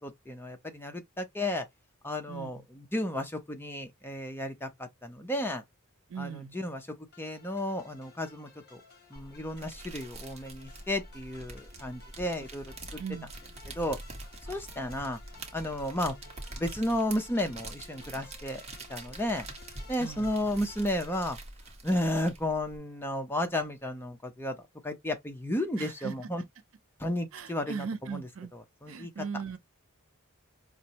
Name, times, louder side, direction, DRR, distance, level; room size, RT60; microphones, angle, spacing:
voice 1, 0.0-1.7 2.0-5.6 6.2-8.8 9.1-12.6 12.9-13.0 13.7-14.0 14.5-15.2 15.5-16.2 16.6-18.6 18.9-19.5 19.9-21.4 21.8-24.6 24.8-26.4 27.0-27.9 28.1-28.2 28.5-29.1, left 1 dB, 10° left, 0.6 m, -33 dB
voice 2, 2.3-2.7 6.1-6.6 13.0-13.3 20.0-20.3 25.8-26.1 27.3-28.5 28.9-29.6, right 6 dB, 70° right, 0.5 m, -38 dB
sound 1, 7.1-21.3, left 4 dB, 50° left, 1.4 m, -55 dB
sound 2, 9.1-22.8, right 2 dB, 30° right, 0.9 m, -45 dB
5.0 x 2.1 x 2.8 m
head